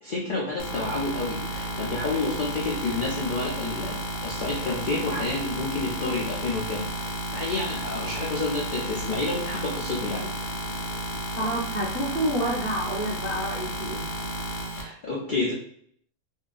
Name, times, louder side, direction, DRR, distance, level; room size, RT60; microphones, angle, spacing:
voice 1, 0.0-10.5 14.7-15.5, left 3 dB, 60° left, -4 dB, 0.5 m, -30 dB
sound 1, 0.6-14.8, right 1 dB, 85° left, 1.1 m, -32 dB
voice 2, 11.4-14.1, right 1 dB, 15° right, -5 dB, 0.4 m, -28 dB
2.7 x 2.2 x 2.4 m, 0.62 s
omnidirectional pair, 1.5 m